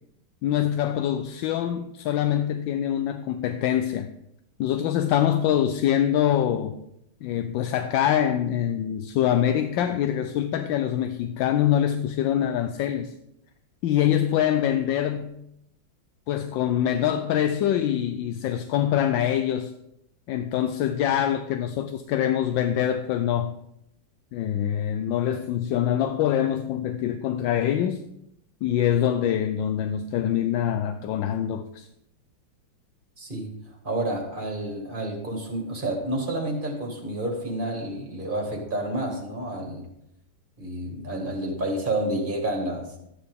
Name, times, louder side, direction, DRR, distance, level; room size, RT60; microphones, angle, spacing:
voice 1, 0.4-4.1 4.6-6.8 7.2-13.1 13.8-15.3 16.3-19.7 20.3-23.5 24.3-28.0 28.6-31.9, left 10 dB, 75° left, 1.2 m, -24 dB
voice 2, 33.2-33.5 33.8-39.9 40.6-42.9, right 1 dB, 25° right, 1.9 m, -29 dB
12.5 x 8.9 x 3.5 m
omnidirectional pair, 2.3 m